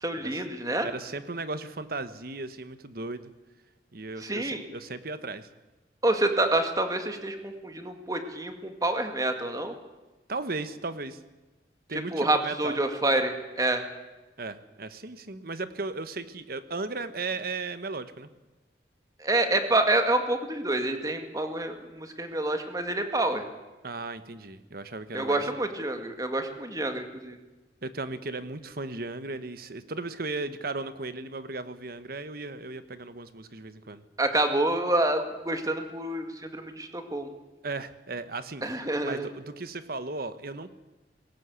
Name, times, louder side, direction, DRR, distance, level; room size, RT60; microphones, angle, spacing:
voice 1, 0.0-0.9 4.2-4.7 6.0-9.7 12.1-13.8 19.2-23.4 25.1-27.4 34.2-37.3 38.6-39.3, right 2 dB, 20° right, 6 dB, 2.1 m, -27 dB
voice 2, 0.8-3.3 3.9-5.5 10.3-11.2 11.9-12.8 14.4-18.3 23.8-25.4 27.8-34.0 37.6-38.6 39.0-40.7, right 3 dB, 55° right, 12 dB, 1.2 m, -36 dB
20.5 x 17.5 x 8.3 m, 1.1 s
head